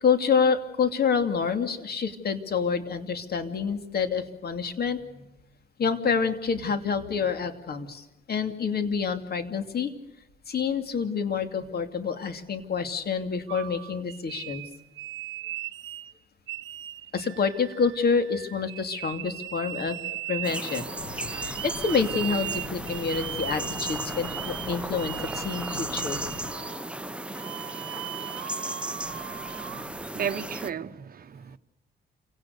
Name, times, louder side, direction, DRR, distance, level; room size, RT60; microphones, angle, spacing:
voice 1, 0.0-5.3 5.8-9.9 10.5-14.6 17.1-20.0 20.3-20.9 21.1-26.2, left 5 dB, 50° left, 2.8 m, -27 dB
sound 1, 13.5-16.1 16.5-29.9, right 14 dB, 80° right, 0.8 m, -38 dB
sound 2, 20.4-30.7, right 1 dB, 5° right, 0.9 m, -36 dB
sound 3, 21.0-26.5, left 4 dB, 75° left, 2.8 m, -42 dB
voice 2, 30.1-31.6, right 8 dB, 45° right, 1.1 m, -33 dB
28.0 x 18.0 x 6.7 m
cardioid pair, 90°, 20 cm